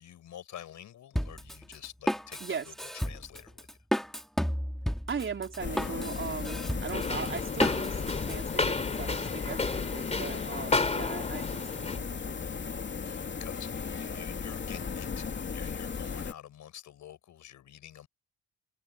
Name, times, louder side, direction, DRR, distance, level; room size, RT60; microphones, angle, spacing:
voice 1, 0.0-3.8 13.0-18.1, left 11 dB, 70° left, 5.0 m, -48 dB
Drum kit, 1.2-8.4, equal, ahead, 2.5 m, -33 dB
voice 2, 2.4-2.7 5.1-11.7 11.9-12.4, right 6 dB, 40° right, 4.1 m, -39 dB
sound 1, 5.6-16.3, left 5 dB, 40° left, 2.9 m, -36 dB
sound 2, 6.9-12.0, left 3 dB, 20° left, 3.1 m, -32 dB
cardioid pair, 90°, 30 cm